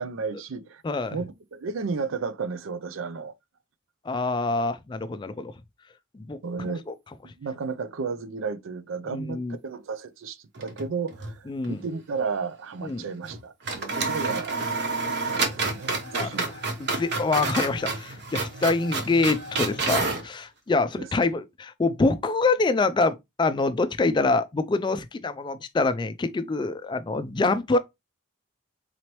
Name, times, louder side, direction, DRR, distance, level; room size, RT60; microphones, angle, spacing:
voice 1, 0.0-0.8 1.1-3.3 6.4-6.8 7.4-14.8 15.3-16.6 21.0-21.1, right 5 dB, 85° right, 0.5 m, -33 dB
voice 2, 0.8-1.2 4.1-5.5 6.1-6.9 9.1-9.6 11.5-11.8 12.8-13.1 16.1-16.3 16.8-27.8, left 3 dB, 25° left, 0.3 m, -25 dB
sound 1, 10.5-11.4 11.6-11.7 13.2-13.4 13.6-20.3, right 3 dB, 55° right, 0.9 m, -29 dB
4.0 x 3.0 x 3.0 m
head